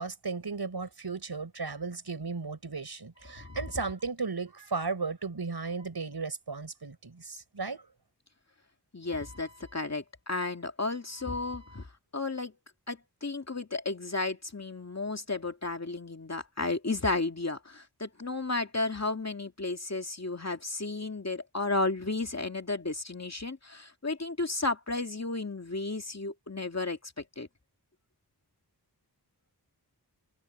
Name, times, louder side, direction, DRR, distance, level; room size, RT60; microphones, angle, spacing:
voice 1, 0.0-7.9, right 4 dB, 75° right, 5.4 m, -35 dB
voice 2, 8.9-11.9 12.1-12.5 12.9-27.5, left 3 dB, 40° left, 2.4 m, -33 dB
wide cardioid pair, 70°, 39 cm